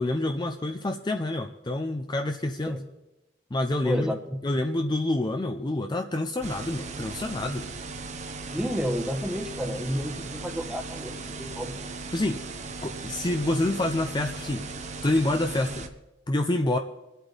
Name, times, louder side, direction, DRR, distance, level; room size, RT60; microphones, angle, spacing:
voice 1, 0.0-2.8 3.5-4.2 4.4-7.7 12.1-12.4 12.8-14.8 15.0-15.8 16.3-16.8, left 2 dB, 25° left, 5 dB, 0.6 m, -27 dB
voice 2, 3.8-4.4 8.5-11.8, equal, 5° right, 5 dB, 1.1 m, -31 dB
sound 1, 6.4-15.9, right 3 dB, 40° right, 1.0 m, -38 dB
24.5 x 8.2 x 4.0 m, 0.99 s
head